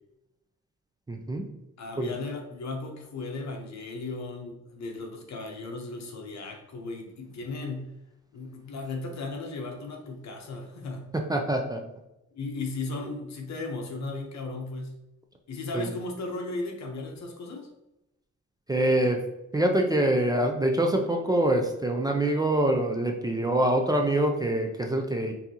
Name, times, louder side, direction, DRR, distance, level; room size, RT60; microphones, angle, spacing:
voice 1, 1.1-1.5 2.0-2.1 11.1-11.8 15.7-15.9 18.7-19.2 19.5-25.3, right 1 dB, 15° right, 2 dB, 0.4 m, -25 dB
voice 2, 1.8-7.9 8.3-11.1 12.3-15.0 15.5-17.7, left 3 dB, 65° left, 2 dB, 1.0 m, -36 dB
5.8 x 2.7 x 2.8 m, 0.91 s
cardioid pair, 130°, 30 cm